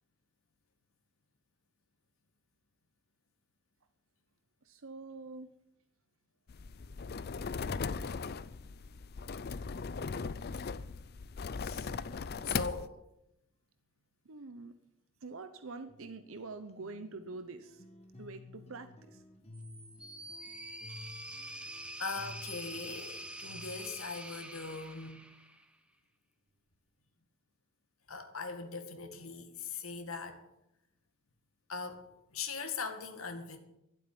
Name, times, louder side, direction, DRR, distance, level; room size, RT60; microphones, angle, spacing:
voice 1, 4.6-5.5 14.3-14.7 15.2-17.8 18.2-19.2, right 3 dB, 65° right, 0.8 m, -45 dB
sound 1, 6.5-12.9, left 5 dB, 45° left, 0.5 m, -38 dB
voice 2, 11.6-11.9 12.4-13.0 21.4-21.7 22.0-25.2 28.1-30.5 31.7-33.6, left 4 dB, 70° left, 2.0 m, -40 dB
sound 2, 15.9-24.1, left 2 dB, 30° left, 1.5 m, -54 dB
sound 3, 19.5-25.8, right 1 dB, 5° right, 1.0 m, -46 dB
12.0 x 7.9 x 9.9 m
head